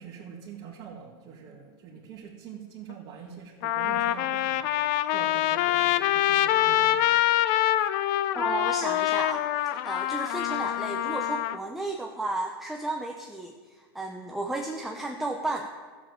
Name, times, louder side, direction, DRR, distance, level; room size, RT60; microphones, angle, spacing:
voice 1, 0.0-4.7 5.0-7.2, right 7 dB, 35° right, -5 dB, 2.1 m, -44 dB
Trumpet, 2.9-3.0 3.6-11.6, left 13 dB, 55° left, 0.6 m, -25 dB
voice 2, 8.3-9.5 9.8-15.7, right 2 dB, ahead, 2 dB, 0.7 m, -33 dB
13.0 x 7.6 x 7.7 m, 1.5 s
supercardioid pair, 140°, 13 cm